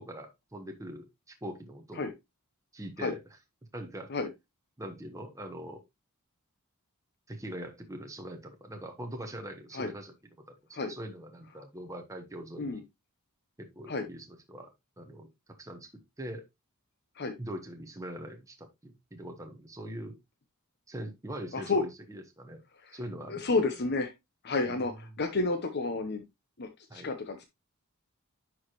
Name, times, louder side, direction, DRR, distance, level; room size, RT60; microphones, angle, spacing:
voice 1, 0.0-2.1 2.7-3.2 3.7-4.1 4.8-5.8 7.3-10.1 10.5-12.8 13.6-14.7 15.0-15.3 15.6-15.9 16.2-16.4 17.4-20.1 20.9-22.6 22.9-23.4 24.6-24.9 26.9-27.1, right 1 dB, 15° right, 3 dB, 1.2 m, -42 dB
voice 2, 21.5-21.8 22.8-23.0 23.3-24.1 24.4-26.2 26.6-27.4, left 3 dB, 50° left, 7 dB, 0.9 m, -31 dB
10.5 x 4.8 x 3.0 m, 0.21 s
head